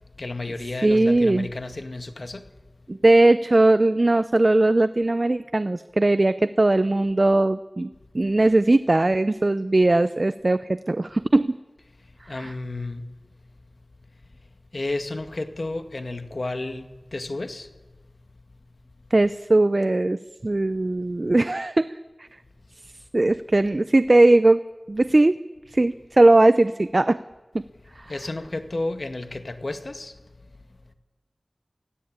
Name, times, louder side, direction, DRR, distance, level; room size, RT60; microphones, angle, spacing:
voice 1, 0.2-2.5 12.3-13.0 14.7-16.9 17.1-17.7 28.1-30.1, left 2 dB, 70° left, 1.9 m, -32 dB
voice 2, 0.8-1.5 2.9-11.6 12.3-12.5 19.1-21.9 22.2-22.3 23.1-24.6 24.9-25.4 25.7-27.2 27.5-27.6 28.0-28.1, right 2 dB, 55° right, 0.7 m, -19 dB
24.5 x 16.5 x 8.9 m
wide cardioid pair, 40°, 0 cm